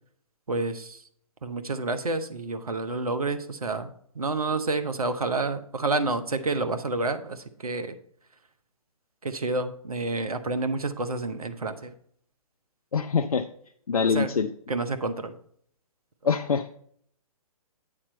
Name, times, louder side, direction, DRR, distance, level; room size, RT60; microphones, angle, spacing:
voice 1, 0.5-1.0 1.4-3.9 4.2-7.9 9.2-11.9 13.9-14.3 14.7-15.4, right 3 dB, 85° right, 10 dB, 0.8 m, -29 dB
voice 2, 12.9-13.4 13.9-14.5 16.3-16.7, left 6 dB, 80° left, 7 dB, 0.5 m, -24 dB
8.7 x 4.3 x 5.2 m, 0.64 s
figure-of-eight pair, 130°, 18 cm